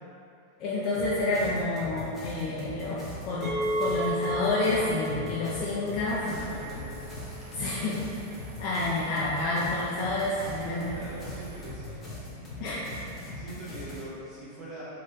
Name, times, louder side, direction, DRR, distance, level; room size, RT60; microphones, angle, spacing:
voice 1, 0.6-6.3 7.5-8.0 8.6-11.0 12.6-12.8, left 2 dB, 40° left, -7 dB, 0.5 m, -29 dB
sound 1, 0.9-14.0, left 1 dB, 15° left, 1.1 m, -41 dB
Chink clink, 3.4-8.6, equal, 10° right, 1.3 m, -35 dB
sound 2, 6.0-11.7, right 3 dB, 65° right, 0.7 m, -48 dB
voice 2, 6.2-7.0 10.9-12.6 13.3-14.8, right 1 dB, 25° right, -10 dB, 1.2 m, -43 dB
4.0 x 2.4 x 3.9 m, 2.7 s
figure-of-eight pair, 90°, 0 cm